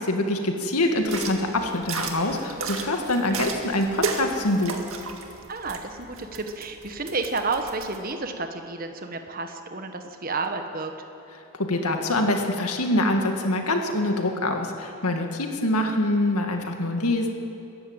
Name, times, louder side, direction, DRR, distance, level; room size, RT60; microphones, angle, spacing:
voice 1, 0.0-4.8 11.5-17.3, left 1 dB, 90° left, 3 dB, 2.1 m, -25 dB
sound 1, 1.0-8.0, right 4 dB, 70° right, 2.0 m, -34 dB
voice 2, 5.5-10.9, right 3 dB, 40° right, 6 dB, 1.3 m, -31 dB
22.5 x 14.5 x 8.9 m, 2.8 s
head